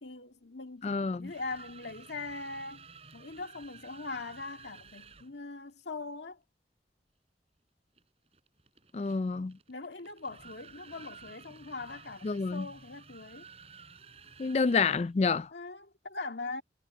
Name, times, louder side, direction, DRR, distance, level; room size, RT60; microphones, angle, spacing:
voice 1, 0.0-2.9 3.1-6.4 9.7-13.5 15.5-16.6, left 3 dB, 85° left, 2.0 m, -41 dB
voice 2, 0.8-1.3 8.9-9.6 12.2-12.7 14.4-15.5, left 4 dB, 35° left, 0.4 m, -28 dB
sound 1, 1.1-5.4 8.0-15.2, right 5 dB, 35° right, 5.7 m, -53 dB
head